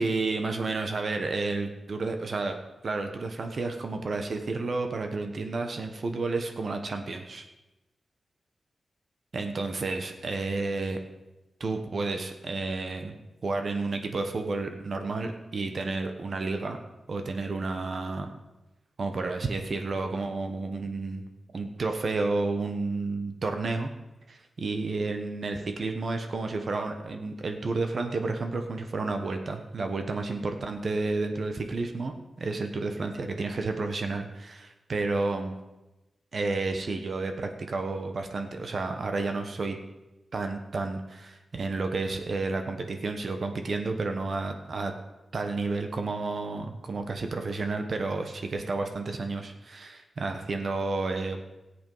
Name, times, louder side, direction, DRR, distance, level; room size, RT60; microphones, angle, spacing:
voice 1, 0.0-2.6 2.8-7.5 9.3-11.0 11.6-13.2 13.4-16.8 17.1-18.3 19.0-21.3 21.5-23.9 24.3-35.6 36.3-39.8 40.3-44.9 45.3-51.4, right 3 dB, 45° right, 5 dB, 1.1 m, -31 dB
17.0 x 8.1 x 5.5 m, 1.0 s
wide cardioid pair, 170°, 0 cm